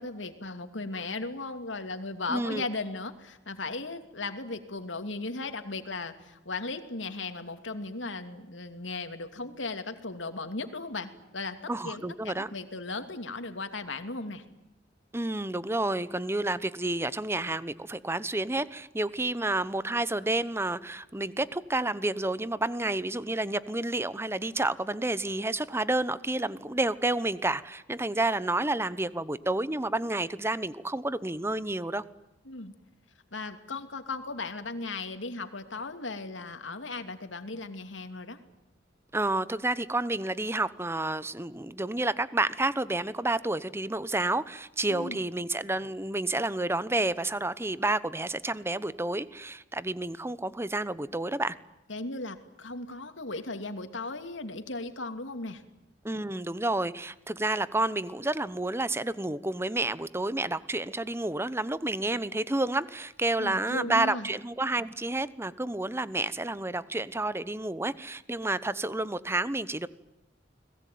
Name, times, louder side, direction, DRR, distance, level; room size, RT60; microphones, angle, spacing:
voice 1, 0.0-14.4 32.5-32.7 33.3-38.4 44.9-45.2 51.9-55.6 63.4-64.3, left 3 dB, 85° left, 8 dB, 2.8 m, -37 dB
voice 2, 2.3-2.6 11.7-12.5 15.1-32.0 39.1-51.5 56.0-69.9, right 2 dB, 15° right, 16 dB, 1.0 m, -30 dB
30.0 x 21.0 x 9.4 m, 0.92 s
head